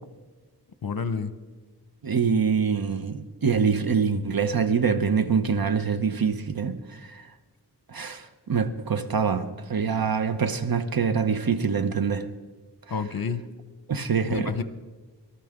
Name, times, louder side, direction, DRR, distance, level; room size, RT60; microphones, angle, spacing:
voice 1, 0.8-1.3 12.9-13.5 14.2-14.6, left 5 dB, 60° left, 1.0 m, -29 dB
voice 2, 2.0-7.2 7.9-12.3 13.9-14.5, right 6 dB, 60° right, 1.0 m, -25 dB
25.0 x 13.0 x 3.7 m
wide cardioid pair, 65°, 41 cm